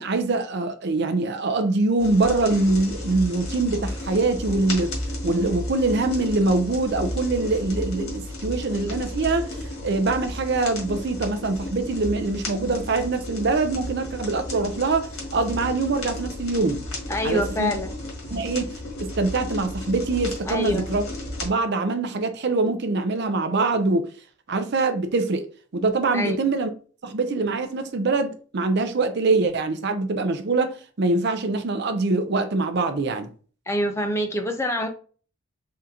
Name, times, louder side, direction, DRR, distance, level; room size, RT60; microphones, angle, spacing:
voice 1, 0.0-4.9 5.2-16.8 17.2-17.7 18.3-18.7 19.0-21.0 21.4-24.1 24.5-26.7 27.0-33.3, right 3 dB, 50° right, 0.5 m, -24 dB
sound 1, 2.0-21.5, left 1 dB, 90° left, 1.7 m, -33 dB
voice 2, 17.1-17.9 20.5-20.9 26.1-26.4 33.7-34.9, equal, 10° left, 0.5 m, -25 dB
3.8 x 3.5 x 2.8 m
head